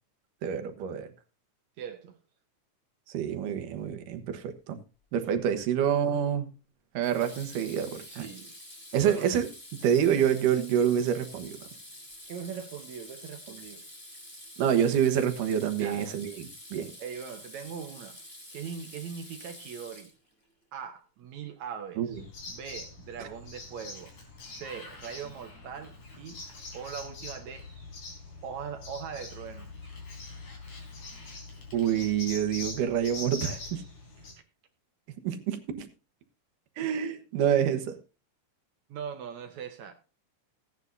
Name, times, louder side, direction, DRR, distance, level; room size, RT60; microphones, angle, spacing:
voice 1, 0.4-1.1 3.1-4.8 5.1-6.5 6.9-8.3 8.9-9.5 9.8-11.6 14.6-16.5 16.7-16.9 22.0-22.1 31.7-33.8 35.2-35.9 36.8-38.0, right 9 dB, 90° right, 2.9 m, -27 dB
voice 2, 1.8-2.2 7.9-8.5 9.0-9.3 12.3-13.8 15.8-16.2 17.0-18.2 18.5-20.1 20.7-22.2 22.5-24.1 24.5-26.4 26.7-27.7 28.4-29.7 38.9-39.9, right 7 dB, 70° right, 2.1 m, -40 dB
Water tap faucet / Sink (filling or washing), 5.4-5.7 7.0-20.4, left 1 dB, 15° left, 5.1 m, -48 dB
sound 1, 22.1-34.3, left 3 dB, 75° left, 5.6 m, -44 dB
Sliding door, 23.3-28.0 29.1-32.8, left 3 dB, 55° left, 4.5 m, -54 dB
16.5 x 9.9 x 2.7 m
omnidirectional pair, 3.6 m